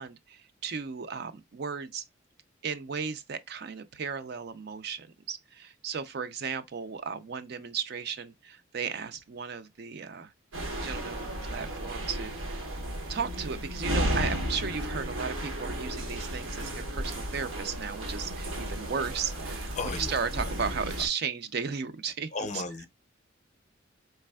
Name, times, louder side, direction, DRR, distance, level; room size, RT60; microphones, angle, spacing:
voice 1, 0.0-2.0 2.6-10.3 10.8-12.6 13.1-22.6, right 6 dB, 50° right, 0.4 m, -35 dB
sound 1, 10.5-21.1, equal, 85° right, 1.1 m, -34 dB
voice 2, 19.8-20.1 22.3-22.9, left 3 dB, 35° left, 0.5 m, -34 dB
4.1 x 3.3 x 2.2 m
head